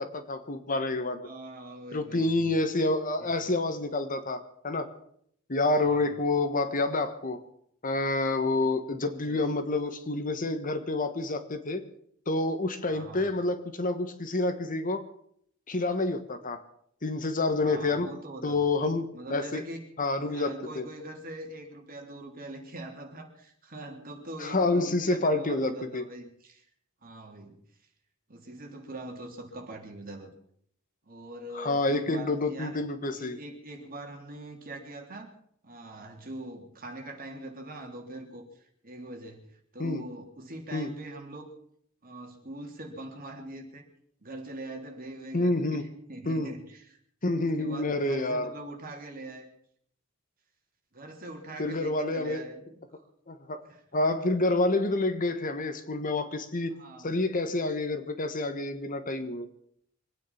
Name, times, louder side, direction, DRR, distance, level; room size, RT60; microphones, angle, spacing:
voice 1, 0.0-1.3 1.9-4.9 5.5-7.4 7.8-11.8 12.3-15.0 15.7-16.6 17.0-18.1 18.4-19.6 20.0-20.9 24.4-26.0 31.5-33.4 39.8-40.0 40.7-40.9 45.3-45.8 46.2-46.5 47.2-48.5 51.6-52.4 53.3-53.7 53.9-56.7 57.0-59.5, left 2 dB, 40° left, 9 dB, 1.5 m, -28 dB
voice 2, 1.2-2.5 3.2-3.3 5.8-6.1 9.0-9.5 12.9-13.3 17.6-18.6 19.1-19.9 20.3-26.6 27.0-27.6 28.3-30.3 31.0-32.8 33.1-35.3 35.6-39.5 39.7-41.5 42.0-43.9 44.2-47.0 47.4-49.5 50.9-53.0 53.6-53.8 56.7-57.2, right 1 dB, 45° right, 2 dB, 3.3 m, -43 dB
25.0 x 9.6 x 5.9 m, 0.67 s
head